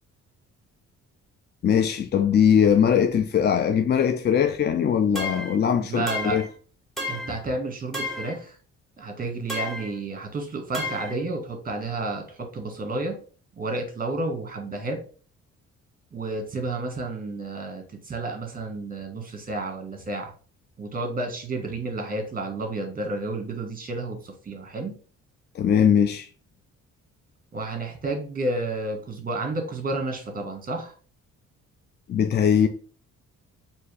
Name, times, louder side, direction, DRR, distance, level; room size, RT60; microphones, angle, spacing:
voice 1, 1.6-6.4 25.6-26.3 32.1-32.7, left 8 dB, 35° left, 0.4 m, -21 dB
sound 1, 5.2-5.6 6.1-6.5 7.0-7.4 7.9-8.4 9.5-9.9 10.7-11.2, left 2 dB, ahead, 1.4 m, -32 dB
voice 2, 5.9-6.4 7.1-8.6 9.0-13.1 13.6-15.0 16.1-20.3 20.8-24.9 27.5-30.9, right 2 dB, 30° right, 1.4 m, -31 dB
3.4 x 2.9 x 4.7 m
cardioid pair, 90°, 30 cm